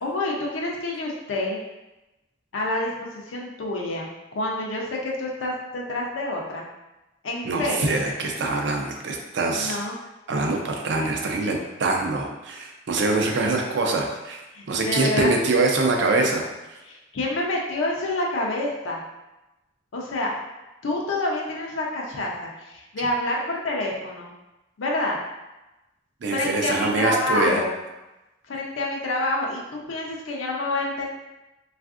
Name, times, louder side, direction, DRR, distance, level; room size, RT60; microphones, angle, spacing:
voice 1, 0.0-1.6 2.5-2.9 3.3-6.7 7.2-8.0 9.5-10.0 14.5-15.3 16.9-19.0 19.9-20.3 20.8-24.3 24.8-25.2 26.3-27.8 28.5-31.0, left 2 dB, 85° left, -2 dB, 0.5 m, -28 dB
voice 2, 7.5-9.8 10.3-14.4 14.7-16.4 26.2-27.6, right 3 dB, 65° right, 2 dB, 0.4 m, -24 dB
3.4 x 2.4 x 2.4 m, 1.0 s
head